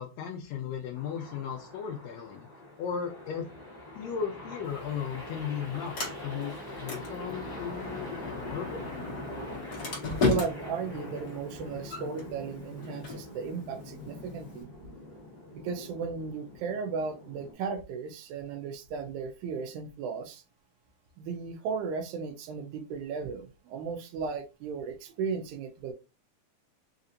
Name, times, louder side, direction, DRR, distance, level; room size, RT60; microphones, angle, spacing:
voice 1, 0.0-2.5 2.8-3.5 3.9-6.0 6.2-8.8, left 7 dB, 80° left, 1.6 m, -36 dB
sound 1, 0.9-17.5, left 1 dB, 15° left, 1.4 m, -44 dB
Sliding door, 4.6-14.6, left 3 dB, 55° left, 1.1 m, -36 dB
voice 2, 10.3-14.7 15.5-20.4 21.2-25.9, right 5 dB, 80° right, 1.9 m, -35 dB
4.9 x 2.7 x 2.6 m
omnidirectional pair, 3.5 m